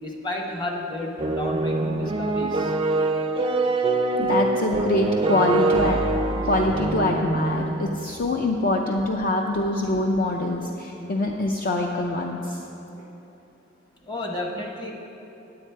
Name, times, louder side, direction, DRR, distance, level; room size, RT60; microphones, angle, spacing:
voice 1, 0.0-2.8 14.0-14.9, left 1 dB, 25° left, 0 dB, 1.0 m, -31 dB
sound 1, 1.2-8.1, right 2 dB, 25° right, 0.4 m, -24 dB
voice 2, 4.2-6.0 6.4-12.6, left 1 dB, 45° left, 1 dB, 0.5 m, -24 dB
9.3 x 8.7 x 4.5 m, 2.9 s
head